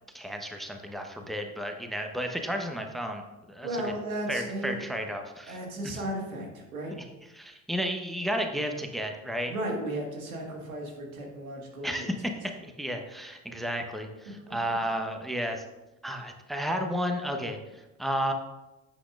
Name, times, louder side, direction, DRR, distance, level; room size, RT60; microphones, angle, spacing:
voice 1, 0.1-3.2 3.5-3.9 4.3-5.6 5.8-6.0 7.0-7.1 7.3-9.5 11.8-15.6 16.0-18.3, equal, ahead, 4 dB, 1.0 m, -32 dB
voice 2, 3.6-4.8 5.5-6.9 9.5-12.1, right 1 dB, 85° right, 0 dB, 1.8 m, -35 dB
9.9 x 8.1 x 2.5 m, 1.0 s
figure-of-eight pair, 60°, 41 cm